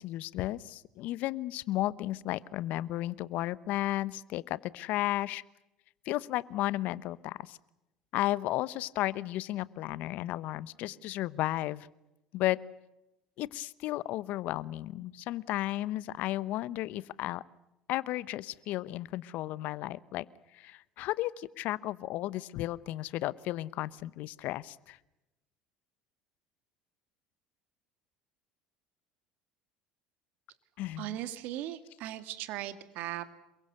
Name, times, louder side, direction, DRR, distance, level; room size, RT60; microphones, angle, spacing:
voice 1, 0.0-5.4 6.1-7.6 8.1-11.9 12.3-12.6 13.4-17.4 17.9-20.2 20.5-25.0 30.8-31.1, left 16 dB, 60° left, 19 dB, 0.9 m, -34 dB
voice 2, 31.0-33.3, right 13 dB, 60° right, 11 dB, 2.2 m, -38 dB
27.5 x 23.0 x 6.8 m, 0.92 s
hypercardioid pair, 70°, 3 cm